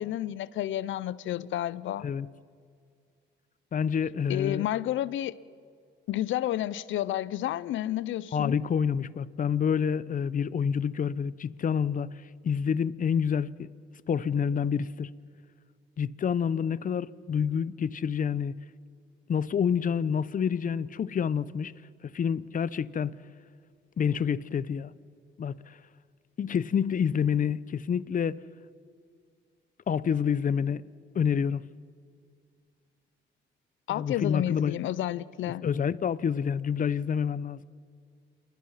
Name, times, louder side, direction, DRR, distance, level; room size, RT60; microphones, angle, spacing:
voice 1, 0.0-2.1 4.3-5.3 6.1-8.6 33.9-35.7, left 13 dB, 75° left, 0.7 m, -31 dB
voice 2, 3.7-4.6 8.3-12.1 12.4-13.7 14.1-15.1 16.0-18.5 19.3-21.7 22.0-23.1 24.0-24.9 25.4-25.8 26.4-28.4 29.9-30.8 31.1-31.6 33.9-34.8 35.6-37.6, left 7 dB, 45° left, 0.7 m, -28 dB
28.0 x 21.0 x 5.8 m
cardioid pair, 90°, 20 cm